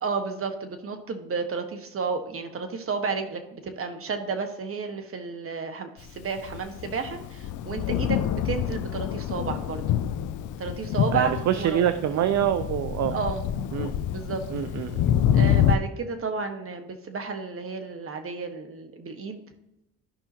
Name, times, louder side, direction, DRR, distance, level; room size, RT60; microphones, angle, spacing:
voice 1, 0.0-9.8 10.6-11.9 13.1-13.4 14.1-14.4 15.3-19.4, right 5 dB, 45° right, 6 dB, 1.5 m, -32 dB
Thunder, 6.2-15.8, left 10 dB, 80° left, 0.6 m, -27 dB
voice 2, 11.1-13.2 13.7-13.9 14.5-15.1, right 10 dB, 65° right, 11 dB, 0.6 m, -25 dB
13.5 x 5.7 x 2.9 m, 0.91 s
cardioid pair, 90°, 30 cm